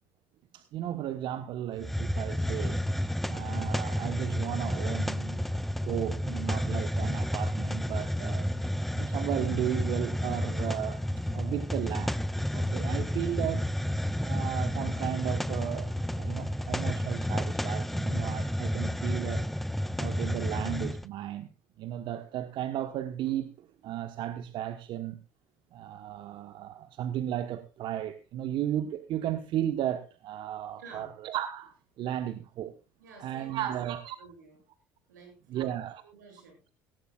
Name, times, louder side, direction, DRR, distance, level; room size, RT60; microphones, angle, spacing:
voice 1, 0.5-2.9 3.3-5.4 5.8-8.5 8.9-11.0 11.3-12.2 12.5-13.7 14.2-19.4 20.0-21.5 21.8-25.2 25.7-32.7 33.2-34.2 35.5-36.0, right 11 dB, 60° right, 1.1 m, -34 dB
Hiss, 1.8-21.0, equal, ahead, 0.6 m, -31 dB
voice 2, 30.8-31.1 33.0-34.6 35.1-36.7, right 4 dB, 90° right, 7.8 m, -52 dB
17.5 x 16.5 x 2.4 m
hypercardioid pair, 70°, 9 cm